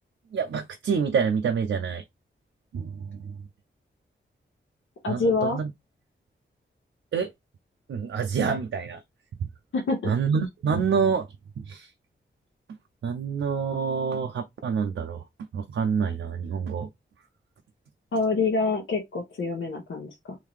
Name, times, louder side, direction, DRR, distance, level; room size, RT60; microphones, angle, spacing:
voice 1, 0.3-2.0 2.7-3.4 5.1-5.7 7.1-7.3 7.9-9.0 10.0-11.3 11.6-11.9 13.0-15.2 15.5-16.9, right 6 dB, 90° right, 0.5 m, -27 dB
voice 2, 5.0-5.6 9.7-10.1 18.1-20.4, left 3 dB, 80° left, 1.1 m, -26 dB
3.7 x 2.7 x 3.1 m
wide cardioid pair, 125°, 20 cm